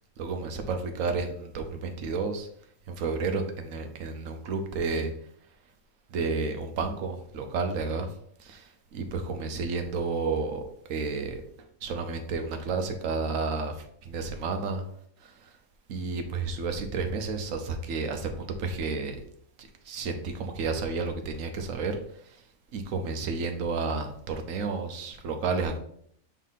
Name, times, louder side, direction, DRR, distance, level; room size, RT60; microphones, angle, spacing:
voice 1, 0.2-2.5 2.9-5.1 6.1-8.1 8.4-11.4 11.8-13.7 14.0-14.8 15.2-15.3 15.9-19.2 19.9-22.0 22.7-25.8, right 4 dB, 70° right, 5 dB, 1.2 m, -31 dB
5.6 x 4.1 x 4.1 m, 0.65 s
omnidirectional pair, 1.5 m